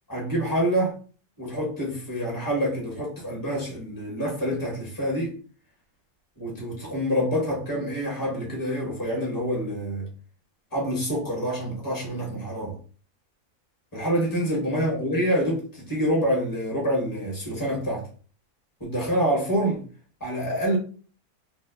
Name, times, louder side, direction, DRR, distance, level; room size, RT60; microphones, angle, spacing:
voice 1, 0.1-0.9 1.4-5.4 6.4-10.1 10.7-12.7 13.9-18.0 18.8-19.8 20.2-20.8, equal, 15° left, 0.9 m, -26 dB
2.9 x 2.3 x 2.2 m
omnidirectional pair, 1.5 m